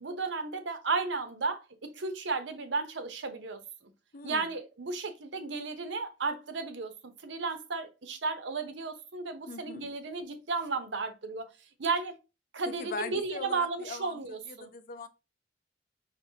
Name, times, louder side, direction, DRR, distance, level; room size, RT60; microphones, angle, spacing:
voice 1, 0.0-3.6 4.2-6.9 7.2-11.4 11.8-12.1 12.5-14.7, right 4 dB, 80° right, 0.7 m, -34 dB
voice 2, 4.1-4.5 9.5-9.8 12.7-15.1, left 4 dB, 50° left, 0.4 m, -41 dB
5.1 x 3.0 x 2.7 m
head